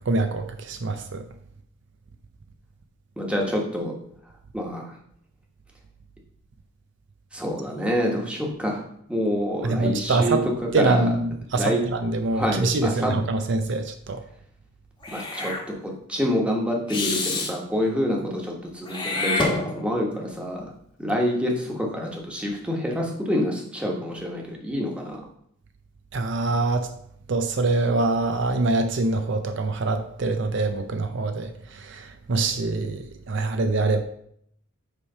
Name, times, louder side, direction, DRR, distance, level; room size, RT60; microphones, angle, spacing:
voice 1, 0.1-1.2 9.6-10.4 10.7-14.2 26.1-26.9 27.3-34.0, right 2 dB, 60° right, 0.5 m, -24 dB
voice 2, 3.2-3.9 4.5-4.9 7.3-8.8 9.1-11.1 11.6-11.8 12.3-13.1 15.1-15.5 15.8-20.7 21.0-25.2, equal, 5° right, 1.2 m, -27 dB
Meow / Hiss, 15.0-15.6 16.9-17.5 18.8-20.1, left 2 dB, 25° left, 1.2 m, -27 dB
8.2 x 3.3 x 5.5 m
head